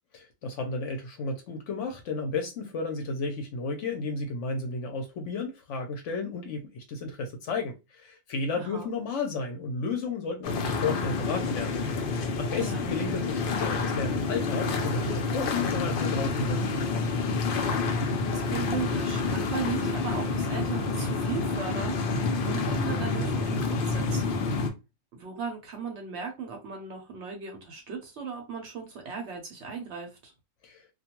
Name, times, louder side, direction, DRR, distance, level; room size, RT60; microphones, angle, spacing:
voice 1, 0.1-11.7 12.4-16.6 30.6-30.8, left 3 dB, 65° left, 0.8 m, -33 dB
voice 2, 8.5-8.9 12.5-12.9 18.3-24.4 25.1-30.3, right 5 dB, 60° right, 0.8 m, -37 dB
sound 1, 10.4-24.7, left 3 dB, 80° left, 0.4 m, -28 dB
2.4 x 2.2 x 2.8 m
omnidirectional pair, 1.5 m